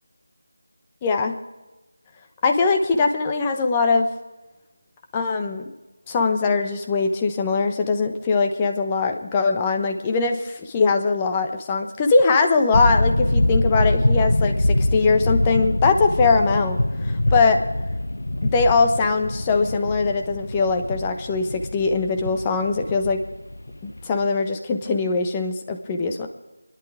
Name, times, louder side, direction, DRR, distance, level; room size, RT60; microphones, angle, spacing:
voice 1, 1.0-1.3 2.4-4.1 5.1-5.7 6.1-17.6 18.4-23.2 23.8-26.3, left 4 dB, 15° left, 5 dB, 1.1 m, -21 dB
sound 1, 12.7-24.2, left 1 dB, 75° left, 0.9 m, -24 dB
29.5 x 11.0 x 3.7 m, 1.1 s
figure-of-eight pair, 165°, 0 cm